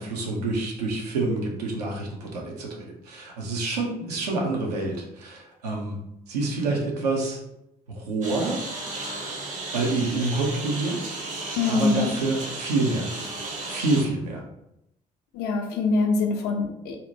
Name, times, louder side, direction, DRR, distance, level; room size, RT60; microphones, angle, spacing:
voice 1, 0.0-6.0 6.3-7.4 7.9-8.6 9.7-11.1 11.7-13.1 13.6-14.4, right 2 dB, 75° right, -1 dB, 0.5 m, -27 dB
Engine, 8.2-14.0, right 2 dB, 40° right, 0.7 m, -34 dB
voice 2, 11.6-12.1 15.3-17.1, left 3 dB, 55° left, 3 dB, 0.5 m, -24 dB
2.7 x 2.1 x 2.6 m, 0.82 s
figure-of-eight pair, 45°, 20 cm